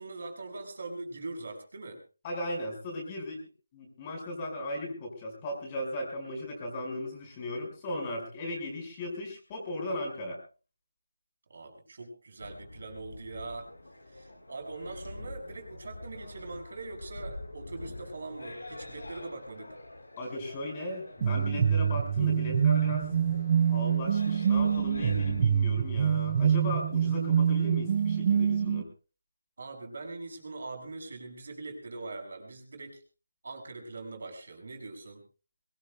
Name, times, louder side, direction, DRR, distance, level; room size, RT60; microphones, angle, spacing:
voice 1, 0.0-2.0 11.5-13.7 14.1-19.7 29.6-33.0 33.4-35.2, right 3 dB, 55° right, 3 dB, 6.0 m, -42 dB
voice 2, 2.2-3.4 3.7-10.4 20.2-23.1 23.7-28.9, left 1 dB, 20° left, 2 dB, 5.3 m, -37 dB
sound 1, 12.4-25.4, left 2 dB, 80° left, 5.6 m, -45 dB
sound 2, 21.2-28.8, right 8 dB, 35° right, 0.9 m, -26 dB
23.0 x 20.0 x 2.3 m, 0.34 s
figure-of-eight pair, 160°, 0 cm